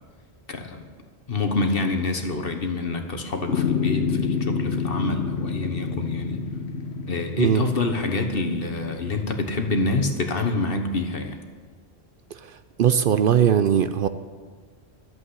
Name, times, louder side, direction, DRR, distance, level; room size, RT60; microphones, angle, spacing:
voice 1, 0.5-0.9 1.3-6.4 7.1-11.4, left 3 dB, 60° left, 6 dB, 1.4 m, -26 dB
sound 1, 3.5-9.9, left 5 dB, 80° left, 1.3 m, -29 dB
voice 2, 12.4-14.1, right 9 dB, 60° right, 11 dB, 0.7 m, -20 dB
11.5 x 8.0 x 9.6 m, 1.5 s
omnidirectional pair, 1.1 m